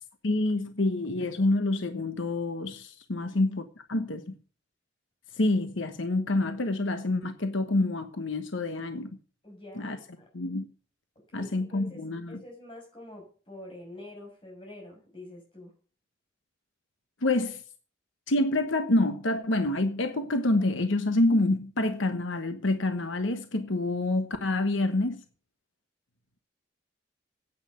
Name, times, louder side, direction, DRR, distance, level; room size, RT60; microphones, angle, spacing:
voice 1, 0.2-4.3 5.3-9.2 9.7-10.0 10.3-10.7 11.3-12.4 17.2-17.6 18.3-25.2, left 2 dB, 80° left, 1.2 m, -27 dB
voice 2, 9.4-10.3 11.3-12.0 12.3-15.7, left 1 dB, 25° left, 6.1 m, -46 dB
9.9 x 8.9 x 6.7 m
head